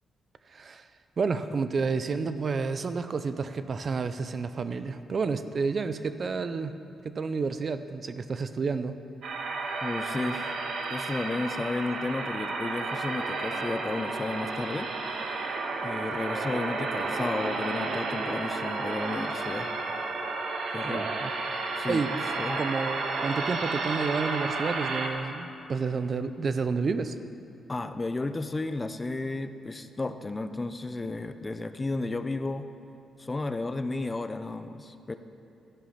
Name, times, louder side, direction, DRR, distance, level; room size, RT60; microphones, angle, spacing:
voice 1, 0.5-0.9 1.2-6.8 7.0-9.0 20.8-21.3 21.9-22.1 22.6-27.2, right 4 dB, 50° right, 11 dB, 0.6 m, -30 dB
sound 1, 9.2-25.1, right 3 dB, 75° right, 1.4 m, -32 dB
voice 2, 9.8-10.6 10.9-14.9 15.8-19.7 20.7-21.1 21.8-22.6 27.7-32.7 33.2-35.1, left 2 dB, 25° left, 10 dB, 0.6 m, -33 dB
13.5 x 10.5 x 5.8 m, 2.7 s
cardioid pair, 80°, 0 cm